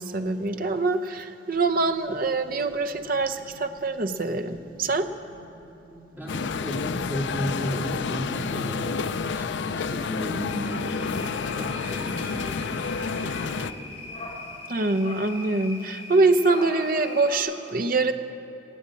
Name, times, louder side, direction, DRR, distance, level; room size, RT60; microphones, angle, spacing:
voice 1, 0.0-5.1 14.7-18.1, right 3 dB, 50° right, 7 dB, 0.7 m, -24 dB
sound 1, 1.5-14.4, equal, 10° left, 3.2 m, -50 dB
voice 2, 6.2-9.0 9.4-13.8, equal, 10° right, -5 dB, 3.1 m, -34 dB
sound 2, 6.3-13.7, left 5 dB, 75° left, 0.4 m, -30 dB
sound 3, 10.5-17.4, left 2 dB, 35° left, 2.6 m, -40 dB
16.0 x 8.7 x 8.5 m, 2.8 s
head